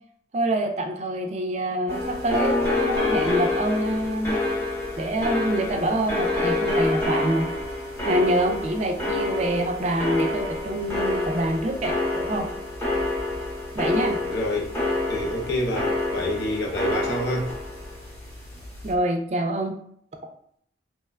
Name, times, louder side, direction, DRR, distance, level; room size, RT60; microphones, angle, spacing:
voice 1, 0.3-4.4 5.0-7.5 8.1-12.5 13.7-14.2 18.8-19.8 20.2-20.3, right 1 dB, 35° right, 4 dB, 0.3 m, -26 dB
sound 1, 1.9-18.9, left 2 dB, 15° left, 0.7 m, -27 dB
voice 2, 14.3-14.8 15.1-17.5, left 1 dB, 75° left, -1 dB, 0.7 m, -27 dB
3.0 x 2.1 x 2.3 m, 0.66 s
head